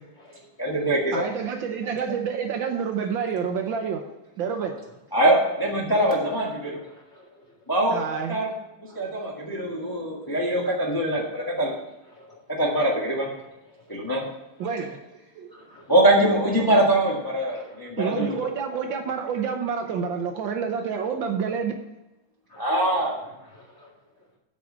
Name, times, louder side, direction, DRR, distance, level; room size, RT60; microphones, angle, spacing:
voice 1, 0.6-1.2 5.1-6.8 7.7-8.0 8.3-8.6 8.9-11.8 12.6-13.3 13.9-14.2 15.9-18.5 22.6-23.1, right 1 dB, 10° left, -3 dB, 1.3 m, -23 dB
voice 2, 1.1-4.0 4.4-4.8 7.9-8.4 14.6-15.0 15.3-15.5 18.0-21.7, right 6 dB, 70° right, 4 dB, 1.4 m, -28 dB
voice 3, 6.9-7.3 12.2-12.4 15.5-15.8 17.5-17.9 22.5-22.6 23.6-23.9, left 1 dB, 30° left, -4 dB, 2.4 m, -52 dB
8.8 x 4.8 x 7.3 m, 0.94 s
omnidirectional pair, 2.4 m